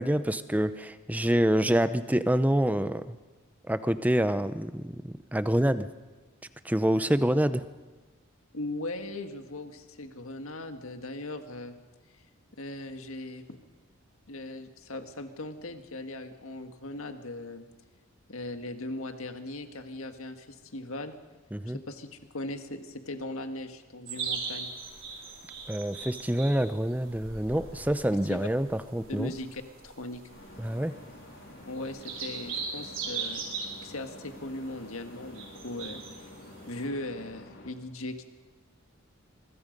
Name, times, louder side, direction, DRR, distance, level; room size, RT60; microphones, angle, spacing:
voice 1, 0.0-3.2 3.7-5.0 5.3-5.9 6.6-7.6 21.5-21.8 25.7-29.3 30.6-30.9, right 1 dB, 5° right, 12 dB, 0.6 m, -26 dB
voice 2, 8.5-11.8 12.6-13.6 14.3-17.7 18.3-21.2 21.7-24.7 28.3-28.4 29.1-30.2 31.7-33.4 33.8-36.2 36.7-38.2, left 2 dB, 70° left, 7 dB, 1.7 m, -39 dB
sound 1, 24.1-36.8, right 5 dB, 60° right, 4.7 m, -40 dB
sound 2, 30.3-37.7, left 1 dB, 55° left, 3.6 m, -49 dB
25.0 x 21.5 x 5.3 m, 1.3 s
head